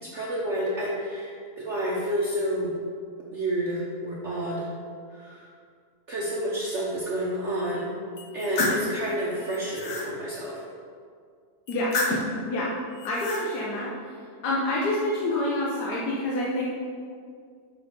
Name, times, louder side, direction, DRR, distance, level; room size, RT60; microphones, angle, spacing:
voice 1, 0.0-2.7 3.3-4.7 5.1-5.5 6.1-7.9 8.3-10.6, right 1 dB, 55° right, -5 dB, 1.1 m, -29 dB
sound 1, 8.2-8.9 9.4-10.1 11.7-12.4 13.0-13.5, left 2 dB, 60° left, 1.4 m, -29 dB
voice 2, 13.0-14.1 14.4-16.7, left 1 dB, 80° left, -5 dB, 1.5 m, -27 dB
5.9 x 5.0 x 5.3 m, 2.1 s
omnidirectional pair, 1.7 m